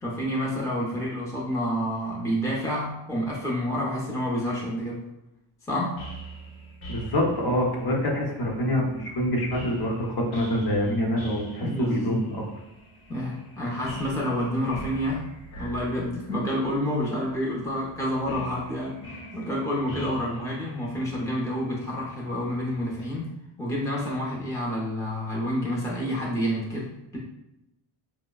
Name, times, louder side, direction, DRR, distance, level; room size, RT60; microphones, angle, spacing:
voice 1, 0.0-5.0 5.7-6.0 11.6-12.2 13.1-19.0 19.3-23.3 23.6-27.2, equal, 5° left, -4 dB, 0.6 m, -29 dB
sound 1, 6.0-23.2, right 1 dB, 75° left, 1.1 m, -44 dB
voice 2, 6.9-12.4, equal, 50° left, -1 dB, 0.8 m, -26 dB
4.8 x 2.0 x 2.3 m, 0.94 s
wide cardioid pair, 125°, 49 cm